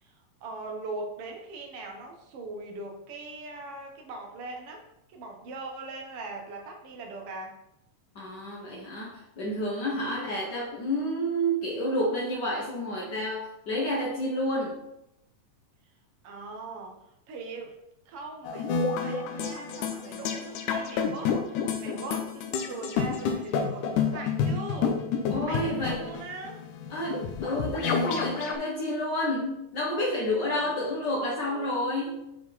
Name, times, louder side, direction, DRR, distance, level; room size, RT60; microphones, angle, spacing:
voice 1, 0.0-7.5 10.0-10.3 16.2-17.0 17.3-17.8 18.1-26.6 30.5-31.9, right 3 dB, 55° right, 2 dB, 1.8 m, -40 dB
voice 2, 8.1-14.8 25.3-26.1 26.9-32.4, equal, 90° left, -3 dB, 0.9 m, -30 dB
sound 1, 18.4-28.6, left 6 dB, 75° left, 2.1 m, -29 dB
8.1 x 5.0 x 4.2 m, 0.83 s
omnidirectional pair, 3.9 m